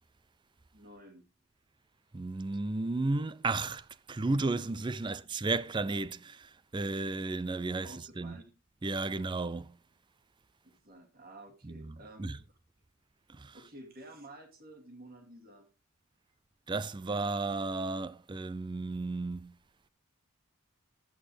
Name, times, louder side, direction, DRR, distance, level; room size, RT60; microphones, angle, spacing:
voice 1, 0.7-1.2 5.1-5.2 7.8-8.4 10.6-12.6 13.5-15.7, right 1 dB, 45° right, 2.3 m, -51 dB
voice 2, 2.1-8.4 8.8-9.7 11.6-12.4 13.4-13.5 16.7-19.5, right 3 dB, 20° right, 0.4 m, -34 dB
11.5 x 8.7 x 3.2 m
head